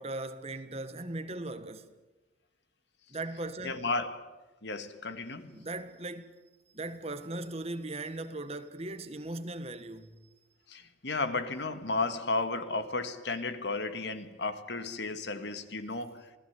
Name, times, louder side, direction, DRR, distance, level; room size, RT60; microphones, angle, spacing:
voice 1, 0.0-1.8 3.1-3.8 5.5-6.4 6.7-10.2, right 2 dB, 35° right, 1.6 m, -38 dB
voice 2, 3.6-5.6 10.7-16.4, left 3 dB, 65° left, 1.8 m, -34 dB
28.0 x 18.5 x 9.5 m
head